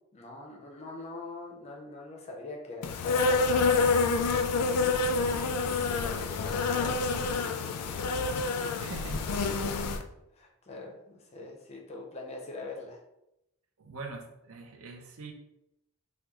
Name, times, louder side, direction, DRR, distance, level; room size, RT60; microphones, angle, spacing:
voice 1, 0.1-8.6 9.4-10.1 10.3-13.0, left 2 dB, 30° left, 0 dB, 0.5 m, -44 dB
Insect, 2.8-10.0, left 4 dB, 90° left, 0.3 m, -27 dB
voice 2, 8.8-9.6 13.8-15.3, right 4 dB, 70° right, 3 dB, 0.5 m, -43 dB
3.0 x 2.2 x 3.4 m, 0.88 s
head